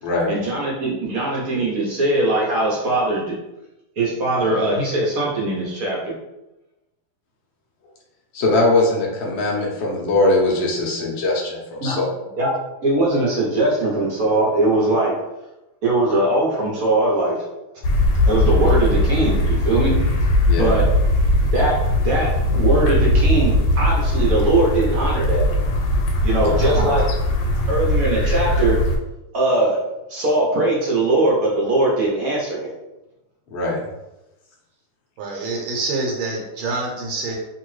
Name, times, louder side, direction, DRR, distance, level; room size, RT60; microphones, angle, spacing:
voice 1, 0.3-3.3 4.0-6.1 11.8-12.0 12.4-12.5 12.8-15.1 15.8-17.4 18.2-19.9 20.5-20.9 21.5-25.5 26.2-27.0 27.6-28.8 29.3-29.8 30.1-32.7, right 2 dB, 65° right, -4 dB, 0.9 m, -20 dB
voice 2, 8.3-12.0 20.4-20.7 26.4-26.6 33.5-33.8, left 2 dB, 65° left, -3 dB, 0.6 m, -20 dB
sound 1, 17.8-29.0, left 1 dB, 90° left, 1.4 m, -19 dB
voice 3, 35.2-37.4, right 3 dB, 90° right, -1 dB, 1.5 m, -26 dB
2.9 x 2.7 x 3.1 m, 0.97 s
omnidirectional pair, 2.1 m